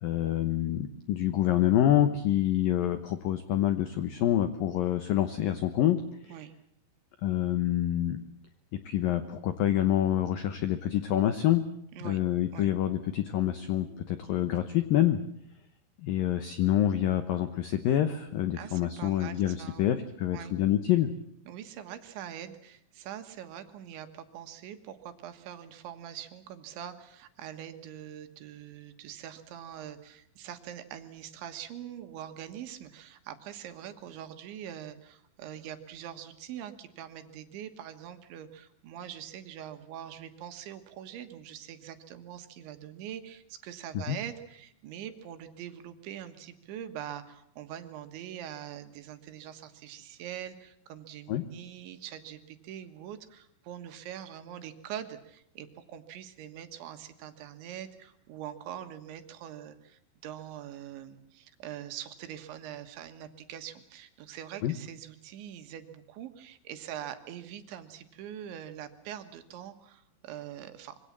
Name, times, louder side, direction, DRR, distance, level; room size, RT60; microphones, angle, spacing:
voice 1, 0.0-6.3 7.2-8.2 8.7-11.6 12.0-15.2 16.0-21.1 43.9-44.2 51.3-51.4 64.6-64.7, left 12 dB, 90° left, 10 dB, 1.9 m, -27 dB
voice 2, 18.5-19.9 20.3-20.6 21.5-71.0, right 10 dB, 70° right, 8 dB, 3.7 m, -43 dB
25.5 x 23.5 x 7.4 m, 0.71 s
omnidirectional pair, 5.7 m